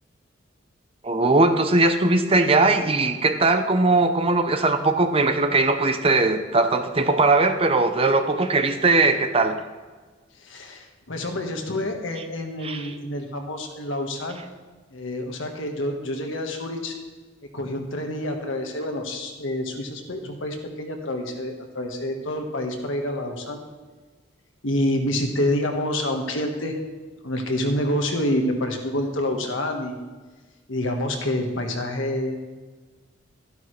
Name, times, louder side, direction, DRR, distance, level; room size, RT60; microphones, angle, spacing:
voice 1, 1.0-9.6 12.6-12.9, right 3 dB, 30° right, 8 dB, 0.6 m, -20 dB
voice 2, 10.4-14.4 14.9-16.9 17.5-23.6 24.6-26.7 27.2-29.9 30.7-32.4, left 1 dB, 75° left, 3 dB, 1.5 m, -27 dB
12.0 x 12.0 x 3.3 m, 1.4 s
head